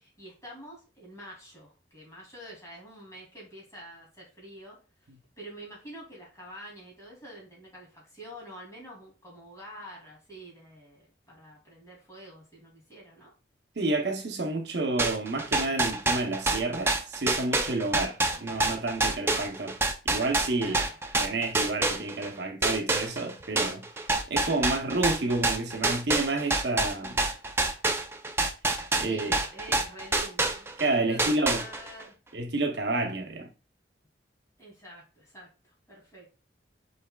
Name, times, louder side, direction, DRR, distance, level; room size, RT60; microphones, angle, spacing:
voice 1, 0.0-5.1 5.4-13.3 20.5-21.0 29.0-30.7 31.0-32.2 34.6-36.5, right 1 dB, 15° left, 2.6 m, -47 dB
voice 2, 13.8-19.7 20.0-20.8 21.2-23.8 24.3-27.2 29.0-29.4 29.7-29.8 30.8-31.6 32.3-33.5, right 2 dB, 70° right, 0.8 m, -29 dB
sound 1, 15.0-22.3 22.6-30.9 31.2-32.0, right 2 dB, 15° right, 0.4 m, -27 dB
5.5 x 4.1 x 2.2 m
head